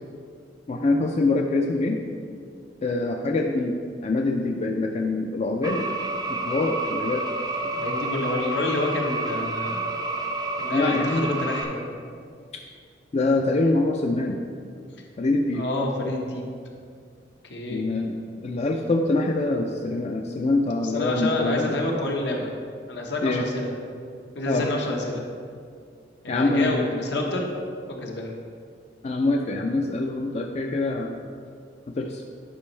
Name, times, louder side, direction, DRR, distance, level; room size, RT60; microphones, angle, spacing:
voice 1, 0.7-2.0 2.8-6.0 6.3-7.2 10.7-11.3 13.1-14.4 15.2-15.6 17.7-21.7 23.2-23.4 24.5-24.7 26.3-26.9 29.0-31.2 32.0-32.2, left 2 dB, 35° left, 2 dB, 0.4 m, -24 dB
sound 1, 5.6-11.6, right 2 dB, 20° right, 0.5 m, -29 dB
voice 2, 7.7-10.0 10.6-11.8 15.5-16.5 17.5-17.8 20.8-22.5 22.9-23.7 24.3-25.2 26.2-27.5 27.9-28.3, left 2 dB, 75° left, 0 dB, 1.1 m, -28 dB
10.0 x 5.3 x 3.2 m, 2.2 s
head